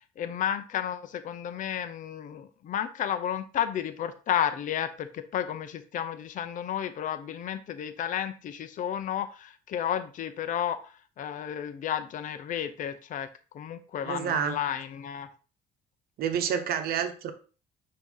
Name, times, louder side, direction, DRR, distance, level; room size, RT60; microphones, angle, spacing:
voice 1, 0.0-10.8 11.2-13.3 13.5-15.3, left 9 dB, 50° left, 10 dB, 0.6 m, -32 dB
voice 2, 14.0-14.6 16.2-17.3, right 8 dB, 65° right, 8 dB, 1.0 m, -28 dB
6.0 x 2.9 x 5.5 m, 0.36 s
cardioid pair, 110°, 17 cm